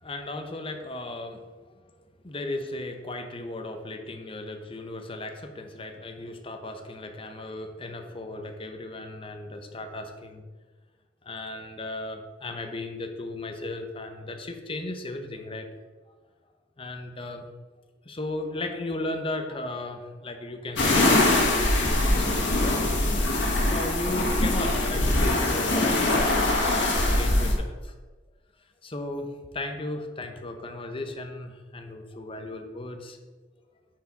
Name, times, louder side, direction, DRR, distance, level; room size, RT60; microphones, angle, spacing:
voice 1, 0.0-1.9 2.2-10.4 11.2-15.7 16.8-17.4 18.0-22.9 23.7-26.2 26.7-27.9 28.8-33.2, left 2 dB, 30° left, 5 dB, 0.8 m, -36 dB
sound 1, 20.8-27.5, left 2 dB, 80° left, 1.7 m, -23 dB
9.0 x 4.8 x 4.6 m, 1.3 s
head